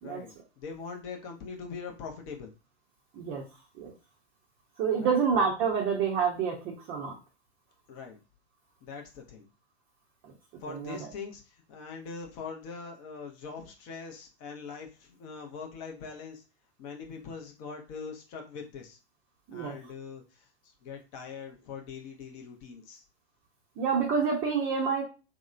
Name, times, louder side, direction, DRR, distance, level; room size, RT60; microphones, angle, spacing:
voice 1, 0.0-2.5 5.0-5.2 7.9-8.2 8.8-9.5 10.6-16.4 16.8-19.0 19.5-23.0, left 5 dB, 25° left, 2 dB, 0.5 m, -42 dB
voice 2, 3.1-3.4 3.8-3.9 4.8-7.2 10.2-10.3 10.7-11.1 19.5-19.8 23.8-25.0, right 6 dB, 25° right, -2 dB, 0.6 m, -28 dB
2.8 x 2.0 x 2.4 m, 0.31 s
figure-of-eight pair, 100°, 33 cm